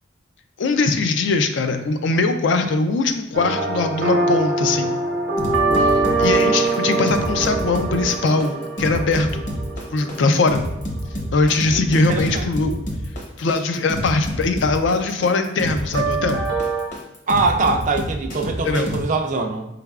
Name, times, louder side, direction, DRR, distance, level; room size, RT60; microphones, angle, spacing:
voice 1, 0.6-4.9 5.8-9.5 9.9-10.6 11.3-12.8 13.4-16.4 18.6-18.9, left 3 dB, 70° left, 7 dB, 0.4 m, -21 dB
sound 1, 3.3-10.6 15.9-16.9, right 3 dB, 65° right, 0.8 m, -23 dB
sound 2, 5.4-19.0, equal, 40° left, 0.8 m, -28 dB
voice 2, 11.7-12.5 17.3-19.7, right 3 dB, 40° right, 4 dB, 0.4 m, -23 dB
4.7 x 3.3 x 2.3 m, 0.91 s
head